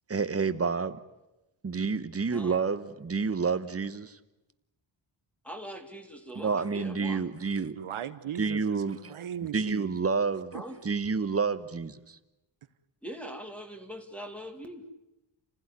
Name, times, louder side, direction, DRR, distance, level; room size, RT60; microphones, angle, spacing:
voice 1, 0.1-1.0 1.6-4.2 6.3-7.8 8.4-9.0 9.5-10.6 10.8-12.2, right 5 dB, 30° right, 1.1 m, -29 dB
voice 2, 5.4-7.2 10.5-10.8 13.0-14.9, equal, 5° left, 2.2 m, -41 dB
voice 3, 7.7-10.0 10.5-10.6, right 10 dB, 85° right, 1.3 m, -38 dB
28.5 x 16.0 x 9.8 m
wide cardioid pair, 140°, 49 cm